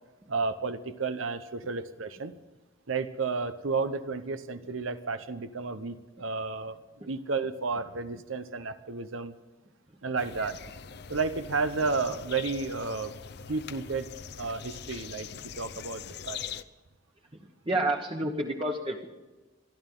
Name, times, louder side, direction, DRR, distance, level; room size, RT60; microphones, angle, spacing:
voice 1, 0.3-2.3 2.9-9.3 10.0-10.6 11.1-13.1 13.5-14.1 14.4-16.5, right 4 dB, 85° right, 11 dB, 0.9 m, -32 dB
sound 1, 10.2-16.6, left 7 dB, 55° left, 0.6 m, -42 dB
voice 2, 17.3-19.1, right 1 dB, 25° right, 1 dB, 1.2 m, -30 dB
28.0 x 11.0 x 3.9 m, 1.2 s
head